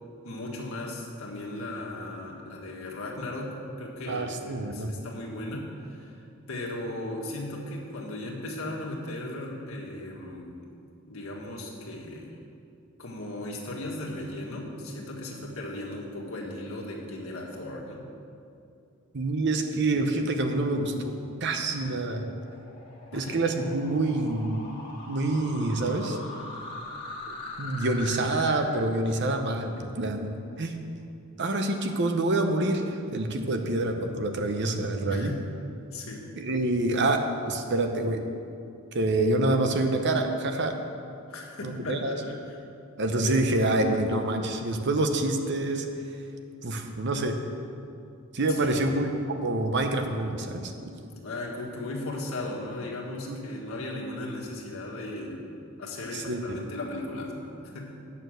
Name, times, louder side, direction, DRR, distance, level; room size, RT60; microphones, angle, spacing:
voice 1, 0.2-6.2 6.5-10.7 11.1-12.3 13.0-18.0 23.1-23.4 35.1-35.5 35.9-36.2 41.3-42.6 48.5-49.1 51.1-55.5 55.8-57.9, left 1 dB, 80° left, -2 dB, 1.7 m, -37 dB
voice 2, 4.1-4.9 19.1-21.1 21.4-22.2 23.1-24.7 25.1-26.2 27.6-30.3 30.6-30.7 31.4-35.3 36.4-38.2 38.9-40.8 41.6-42.2 43.0-45.9 46.6-47.3 48.3-49.1 49.4-50.9 53.3-53.4 56.1-56.6, right 2 dB, 55° right, 5 dB, 0.8 m, -27 dB
sound 1, 21.1-28.6, left 2 dB, 25° left, 1.9 m, -42 dB
8.8 x 6.7 x 6.4 m, 2.5 s
head